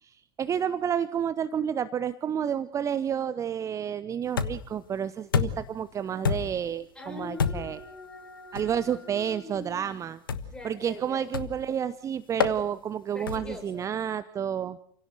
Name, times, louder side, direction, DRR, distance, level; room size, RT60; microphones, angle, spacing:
voice 1, 0.0-7.8 8.5-10.2 10.6-14.8, right 8 dB, 25° right, 15 dB, 0.9 m, -30 dB
sound 1, 4.4-4.8 5.3-5.8 6.2-6.7 7.4-7.8 8.6-8.8 10.3-10.6 11.3-11.7 12.4-12.6 13.3-13.6, left 6 dB, 75° left, 1.4 m, -28 dB
voice 2, 7.0-9.8 10.3-11.3 13.1-13.9, left 2 dB, 5° left, 2 dB, 7.5 m, -43 dB
29.0 x 17.0 x 6.6 m, 0.69 s
figure-of-eight pair, 80°, 12 cm